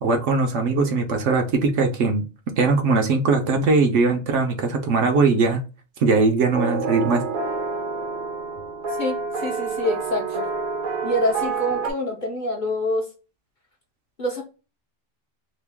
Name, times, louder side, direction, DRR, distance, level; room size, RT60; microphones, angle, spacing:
voice 1, 0.0-2.2 2.6-5.6 6.0-7.2, right 4 dB, 70° right, 5 dB, 1.0 m, -20 dB
sound 1, 6.5-11.9, right 4 dB, 50° right, 0.7 m, -28 dB
voice 2, 9.0-10.5 11.0-13.1 14.2-14.4, left 1 dB, 45° left, 0 dB, 0.8 m, -26 dB
2.9 x 2.5 x 3.4 m, 0.32 s
omnidirectional pair, 1.3 m